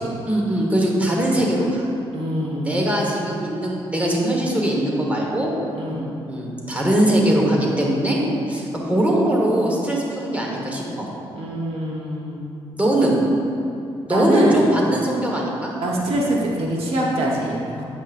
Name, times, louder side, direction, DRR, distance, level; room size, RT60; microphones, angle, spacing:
voice 1, 0.3-1.8 2.6-5.5 6.3-8.2 8.5-11.1 12.7-13.2 14.1-15.7, right 1 dB, 15° right, -2 dB, 1.3 m, -21 dB
voice 2, 2.1-2.8 5.7-6.2 11.3-12.5 14.1-14.6 15.8-17.8, right 1 dB, 75° right, -3 dB, 1.1 m, -24 dB
8.2 x 7.4 x 2.5 m, 2.7 s
cardioid pair, 90°, 10 cm